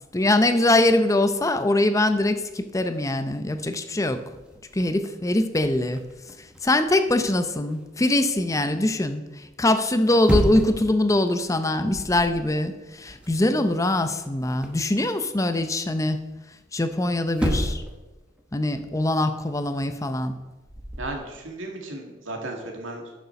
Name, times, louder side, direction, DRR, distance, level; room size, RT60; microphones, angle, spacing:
voice 1, 0.1-4.2 4.7-6.0 6.6-16.2 16.7-17.8 18.5-20.4, left 1 dB, 15° left, 9 dB, 0.5 m, -23 dB
sound 1, 2.2-2.6 3.2-3.3 3.5-7.8 10.0-10.9 11.3-11.5 11.9-12.4 12.7-14.9 16.9-17.0 17.3-18.0 18.3-21.2, equal, 5° right, 1.1 m, -32 dB
voice 2, 21.0-23.0, right 2 dB, 90° right, 1 dB, 2.1 m, -35 dB
10.5 x 6.8 x 5.8 m, 1.1 s
head